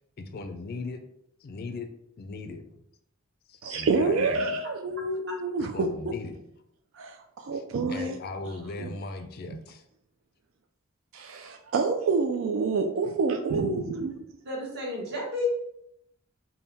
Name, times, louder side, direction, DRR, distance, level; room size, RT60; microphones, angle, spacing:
voice 1, 0.2-1.0 1.4-1.9 2.2-2.8 3.5-4.4 5.6-6.4 7.5-7.6 7.9-9.8, left 3 dB, 45° left, 7 dB, 0.4 m, -38 dB
voice 2, 3.6-6.1 7.0-8.2 8.8-8.9 11.1-14.2, right 4 dB, 75° right, 4 dB, 0.4 m, -28 dB
voice 3, 14.4-15.5, left 2 dB, 50° right, -3 dB, 1.3 m, -31 dB
3.6 x 2.2 x 4.0 m, 0.76 s
head